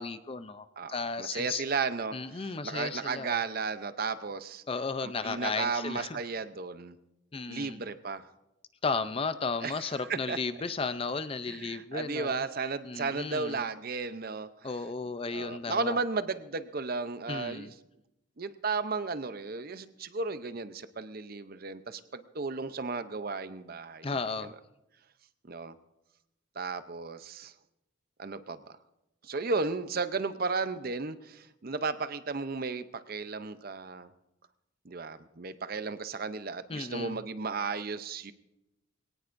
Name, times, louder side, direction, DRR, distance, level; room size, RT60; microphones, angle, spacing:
voice 1, 0.0-1.6 2.1-3.4 4.7-6.2 7.3-7.8 8.8-12.4 12.8-13.6 14.6-16.0 17.3-17.7 24.0-24.5 36.7-37.2, left 4 dB, 25° left, 12 dB, 0.5 m, -34 dB
voice 2, 0.8-4.6 5.0-7.0 7.5-8.3 9.6-10.4 11.5-14.8 15.3-17.7 18.4-24.5 25.5-25.7 26.5-27.5 28.2-28.6 29.2-34.1 34.8-38.3, right 4 dB, 45° right, 12 dB, 0.7 m, -34 dB
22.5 x 18.0 x 2.6 m, 0.90 s
head